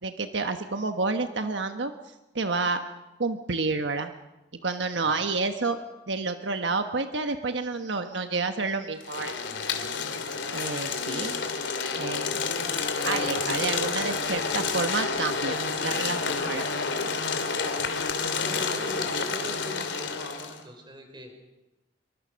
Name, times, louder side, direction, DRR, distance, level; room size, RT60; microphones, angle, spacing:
voice 1, 0.0-2.8 3.2-4.1 4.6-5.8 6.1-9.3 10.5-11.3 12.0-12.5 13.0-16.7, right 3 dB, 80° right, 7 dB, 1.2 m, -29 dB
sound 1, 9.0-20.6, left 4 dB, 80° left, 3.0 m, -29 dB
voice 2, 18.3-21.3, equal, 25° right, 4 dB, 5.2 m, -42 dB
26.5 x 23.5 x 6.4 m, 1.0 s
head